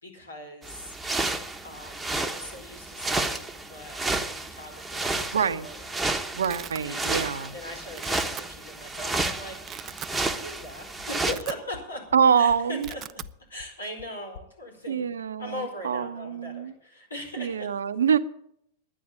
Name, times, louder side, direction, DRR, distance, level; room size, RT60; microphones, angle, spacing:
voice 1, 0.0-1.0 1.6-4.0 4.3-5.3 5.6-5.9 6.8-12.0 12.4-13.0 13.5-17.7, left 1 dB, 80° left, 4.6 m, -40 dB
sound 1, 0.6-11.3, right 2 dB, 10° right, 1.1 m, -31 dB
voice 2, 5.3-5.7 6.3-7.5 12.1-12.9 14.9-16.7 17.4-18.2, right 7 dB, 70° right, 0.7 m, -25 dB
Domestic sounds home sounds, 5.6-5.7 6.0-6.8 7.3-7.6 7.9-8.4 9.0-9.1 9.5-10.2 10.6-10.7 11.0-12.0 12.2-12.4 12.6-13.3, right 11 dB, 35° right, 0.4 m, -41 dB
sound 2, 10.6-10.7 11.0-11.1 11.3-11.4 11.7-11.8 12.1-12.2 12.5-12.9 13.2-13.3 13.6-13.7 14.0-14.1 14.3-14.4, left 8 dB, 55° left, 0.9 m, -45 dB
11.0 x 9.4 x 8.6 m
figure-of-eight pair, 95°, 0 cm